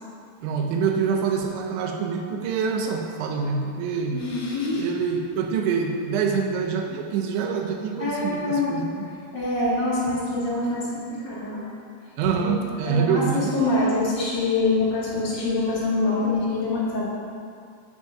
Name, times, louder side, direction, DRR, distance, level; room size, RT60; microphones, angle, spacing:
voice 1, 0.4-4.2 4.8-9.1 12.2-13.5, right 6 dB, 90° right, 2 dB, 3.2 m, -25 dB
voice 2, 4.1-4.9 8.0-8.7 9.3-11.7 12.3-12.5 12.8-17.0, left 2 dB, 55° left, -8 dB, 1.2 m, -25 dB
9.6 x 5.9 x 5.5 m, 2.2 s
omnidirectional pair, 5.2 m